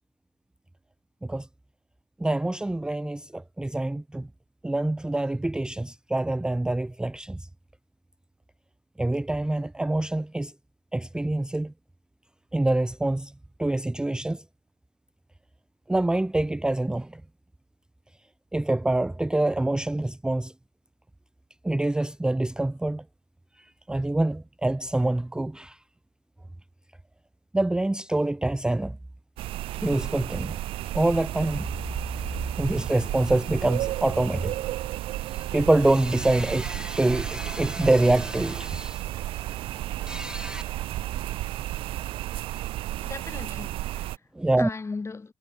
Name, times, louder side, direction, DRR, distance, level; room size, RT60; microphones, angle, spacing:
voice 1, 2.2-4.3 4.6-7.5 9.0-10.5 10.9-11.7 12.5-13.3 13.6-14.4 15.9-17.2 18.5-20.5 21.6-23.0 23.6-25.8 27.5-29.0 29.8-30.6 30.9-31.7 32.6-34.5 35.3-39.0 40.1-40.6 44.4-44.7, right 2 dB, 10° right, 0.4 m, -25 dB
sound 1, 29.4-44.2, right 15 dB, 85° right, 0.6 m, -33 dB
sound 2, 35.4-42.8, right 5 dB, 45° right, 2.1 m, -48 dB
voice 2, 42.9-44.2 44.6-45.3, left 4 dB, 30° left, 2.8 m, -38 dB
cardioid pair, 70°, 9 cm